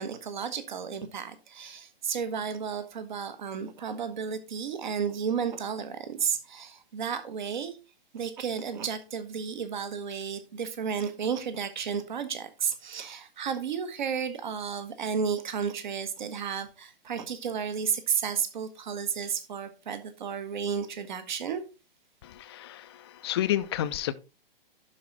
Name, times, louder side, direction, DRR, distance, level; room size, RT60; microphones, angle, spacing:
voice 1, 0.0-7.8 8.1-21.6, right 7 dB, 50° right, 1.5 m, -32 dB
voice 2, 22.2-24.1, left 12 dB, 25° left, 0.5 m, -30 dB
11.5 x 4.9 x 4.1 m
figure-of-eight pair, 125°, 29 cm